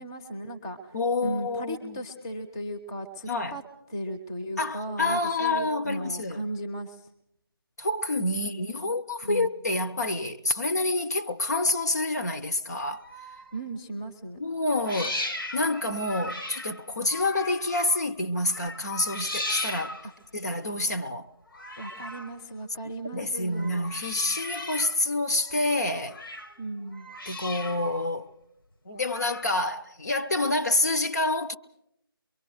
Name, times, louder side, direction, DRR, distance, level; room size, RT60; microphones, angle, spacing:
voice 1, 0.0-0.9 1.2-3.6 3.9-7.0 8.3-8.6 9.2-9.5 13.5-14.4 20.0-20.1 21.8-23.8 26.6-27.1, right 1 dB, 10° left, 0.7 m, -36 dB
voice 2, 0.9-2.0 3.2-3.6 4.6-6.4 7.8-13.0 14.4-15.2 15.5-20.0 20.3-21.3 23.1-26.2 27.3-28.3 28.9-31.5, left 2 dB, 45° left, 0.7 m, -28 dB
sound 1, 12.8-13.6 14.6-18.1 18.4-20.2 21.5-22.4 23.4-25.0 25.3-26.6 26.9-28.1 29.0-29.6, left 1 dB, 65° left, 1.2 m, -37 dB
25.5 x 23.0 x 4.8 m
figure-of-eight pair, 160°, 12 cm